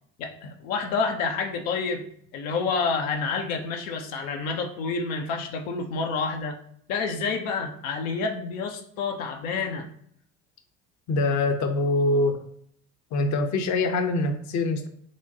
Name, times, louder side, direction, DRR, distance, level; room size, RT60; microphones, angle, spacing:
voice 1, 0.2-2.0 2.3-6.6 6.9-9.9, left 4 dB, 75° left, 3 dB, 0.7 m, -28 dB
voice 2, 11.1-12.4 13.1-14.9, left 2 dB, 45° left, 7 dB, 0.7 m, -24 dB
6.1 x 2.2 x 2.8 m, 0.65 s
hypercardioid pair, 65°, 40 cm